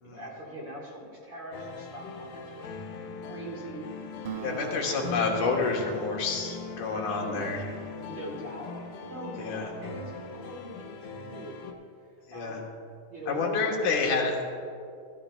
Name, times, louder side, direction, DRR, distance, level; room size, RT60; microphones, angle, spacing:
voice 1, 0.0-2.7 3.2-3.9 4.1-5.2 7.1-7.5 8.0-10.0 10.3-11.7 12.3-12.6 13.1-14.1, right 1 dB, 45° right, -3 dB, 1.6 m, -41 dB
sound 1, 1.5-11.7, left 4 dB, 85° left, 2.7 m, -41 dB
Acoustic guitar, 4.3-9.1, right 9 dB, 80° right, 2.1 m, -44 dB
voice 2, 4.4-7.7 9.4-9.7 12.3-12.6 13.3-14.4, left 4 dB, 65° left, 0 dB, 2.5 m, -29 dB
17.5 x 13.0 x 2.3 m, 2.3 s
omnidirectional pair, 4.2 m